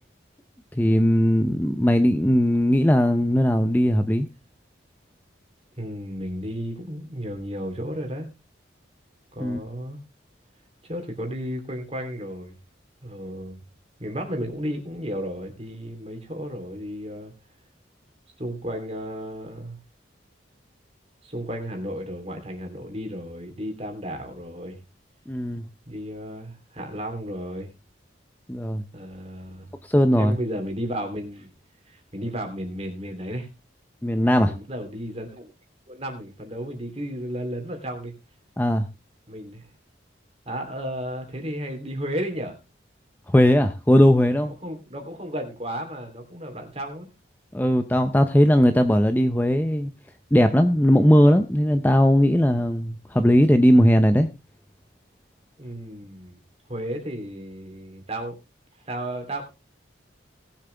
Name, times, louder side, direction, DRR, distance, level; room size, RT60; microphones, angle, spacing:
voice 1, 0.7-4.3 9.4-9.6 25.3-25.7 28.5-28.8 29.9-30.4 34.0-34.5 38.6-38.9 43.3-44.5 47.5-49.9 50.3-54.3, equal, 10° left, 8 dB, 0.6 m, -18 dB
voice 2, 5.8-8.3 9.3-10.0 10.8-12.6 13.0-13.6 14.0-17.3 18.4-19.8 21.2-24.8 25.9-27.7 28.9-29.7 30.2-31.5 31.8-33.5 34.4-35.5 35.9-38.1 39.3-39.7 40.5-42.6 44.6-47.1 55.6-56.4 56.7-58.4 58.9-59.5, equal, 30° right, 4 dB, 3.0 m, -33 dB
19.0 x 7.4 x 3.4 m, 0.26 s
head